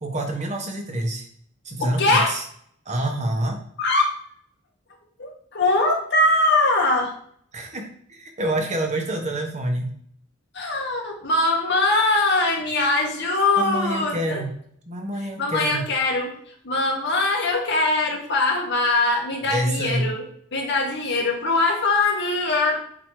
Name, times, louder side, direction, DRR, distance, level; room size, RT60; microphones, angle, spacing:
voice 1, 0.0-1.2 1.6-2.4 2.8-3.6 7.5-9.9 13.6-14.5 14.9-15.9 19.5-20.1, right 1 dB, 35° right, 2 dB, 1.1 m, -27 dB
voice 2, 1.8-2.4 3.8-4.0 5.2-7.1 10.5-14.4 15.4-16.3 16.6-22.8, left 2 dB, 60° left, 1 dB, 1.4 m, -22 dB
7.6 x 3.0 x 4.7 m, 0.64 s
head